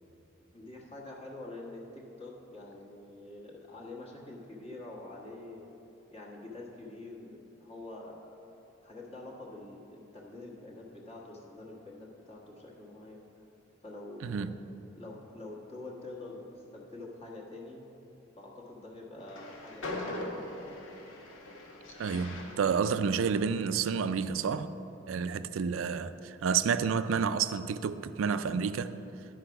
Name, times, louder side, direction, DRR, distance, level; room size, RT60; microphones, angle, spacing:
voice 1, 0.5-5.7 6.1-8.4 8.8-13.2 13.8-14.5 15.0-17.9 18.4-20.9, left 2 dB, 30° left, 1.3 m, -46 dB
voice 2, 14.2-14.5 22.0-24.7 25.1-28.9, right 6 dB, 85° right, 0.4 m, -30 dB
Train, 19.2-24.5, left 1 dB, 85° left, 1.1 m, -42 dB
11.5 x 5.1 x 5.8 m
head